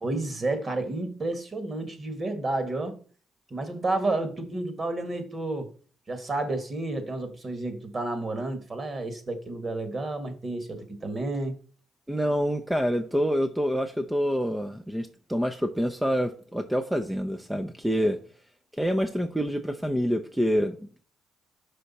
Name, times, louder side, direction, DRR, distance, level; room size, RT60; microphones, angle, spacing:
voice 1, 0.0-3.0 3.5-5.7 6.1-11.5, right 2 dB, 35° right, 1.5 m, -31 dB
voice 2, 12.1-18.2 18.8-21.0, equal, 5° right, 0.6 m, -27 dB
5.7 x 4.9 x 4.1 m
cardioid pair, 90°, 0 cm